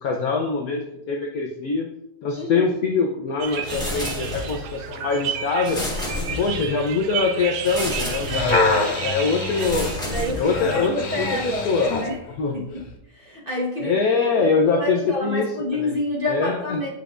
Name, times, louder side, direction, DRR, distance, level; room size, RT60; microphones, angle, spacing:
voice 1, 0.0-1.9 2.2-5.8 6.4-9.9 10.3-11.9 12.4-12.6 13.8-15.9 16.3-16.8, left 4 dB, 85° left, 1 dB, 0.8 m, -23 dB
voice 2, 2.3-2.7 10.1-12.2 12.5-12.8 13.1-13.9 14.4-16.9, left 1 dB, 30° right, -5 dB, 1.3 m, -28 dB
sound 1, 3.4-12.2, right 7 dB, 80° right, 0.9 m, -33 dB
sound 2, 3.6-4.7 5.6-6.8 7.6-8.7 9.5-10.8, left 2 dB, ahead, 1.5 m, -30 dB
sound 3, 8.3-12.1 12.8-12.9, left 3 dB, 55° left, 1.1 m, -26 dB
8.8 x 5.2 x 2.5 m, 0.90 s
omnidirectional pair, 2.3 m